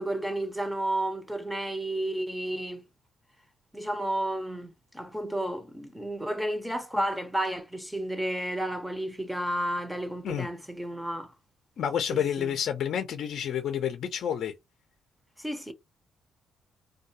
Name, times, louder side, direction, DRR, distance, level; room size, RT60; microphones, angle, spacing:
voice 1, 0.0-2.8 3.7-11.3 12.1-12.5 15.4-15.7, right 1 dB, 5° right, 0.6 m, -32 dB
voice 2, 11.8-14.5, left 9 dB, 65° left, 0.5 m, -29 dB
2.3 x 2.2 x 2.7 m
cardioid pair, 90°, 0 cm